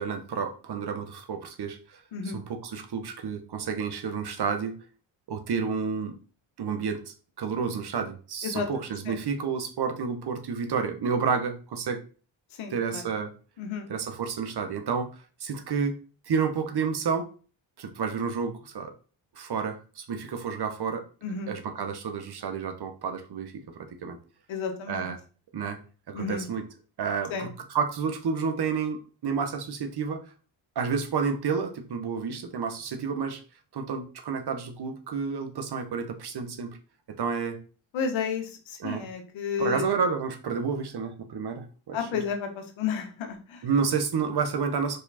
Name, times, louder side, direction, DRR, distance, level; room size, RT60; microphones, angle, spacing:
voice 1, 0.0-2.0 2.3-4.7 5.3-6.1 6.6-12.0 12.7-13.3 13.9-15.9 16.3-17.3 17.8-18.9 19.3-21.0 21.5-24.2 24.9-25.2 25.5-25.8 26.1-26.6 27.0-30.2 30.7-33.4 33.7-36.7 37.2-37.6 38.8-39.0 39.6-42.2 43.6-45.0, right 6 dB, 55° right, 7 dB, 1.3 m, -30 dB
voice 2, 12.5-13.0 13.6-13.9 21.2-21.5 24.5-25.1 26.1-26.5 27.3-27.5 37.9-39.9 41.9-43.7, left 6 dB, 85° left, 5 dB, 1.5 m, -32 dB
4.9 x 4.8 x 4.3 m, 0.38 s
cardioid pair, 80°, 46 cm